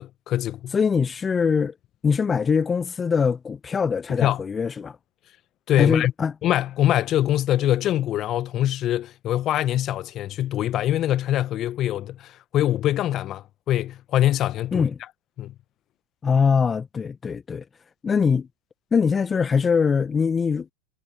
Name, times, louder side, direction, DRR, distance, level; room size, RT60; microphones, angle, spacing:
voice 1, 0.0-0.7 4.2-4.4 5.7-6.1 6.4-14.9 15.4-15.5, left 13 dB, 40° left, 1.1 m, -23 dB
voice 2, 0.7-1.7 2.0-5.0 5.8-6.3 14.7-14.9 16.2-17.6 18.0-18.5 18.9-20.7, left 6 dB, 25° left, 0.8 m, -22 dB
hypercardioid pair, 85°, 0 cm